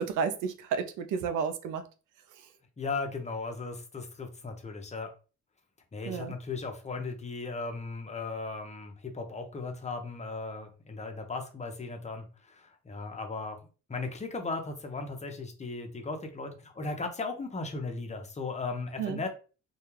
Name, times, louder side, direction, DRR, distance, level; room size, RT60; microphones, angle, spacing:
voice 1, 0.0-1.8 6.1-6.3 19.0-19.2, right 6 dB, 85° right, 0.5 m, -31 dB
voice 2, 2.8-5.1 5.9-13.6 13.9-19.3, left 3 dB, 25° left, 0.6 m, -37 dB
2.3 x 2.2 x 3.0 m
cardioid pair, 90°, 30 cm